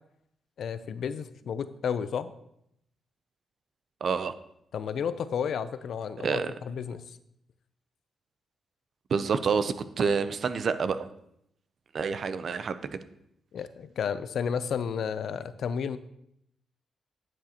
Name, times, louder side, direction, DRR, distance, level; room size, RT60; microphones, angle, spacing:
voice 1, 0.6-2.3 4.7-7.2 13.5-16.0, left 7 dB, 70° left, 13 dB, 0.4 m, -32 dB
voice 2, 4.0-4.3 6.2-6.5 9.1-11.1 11.9-12.8, right 5 dB, 60° right, 12 dB, 0.5 m, -28 dB
10.5 x 6.2 x 2.9 m, 0.76 s
cardioid pair, 75°, 0 cm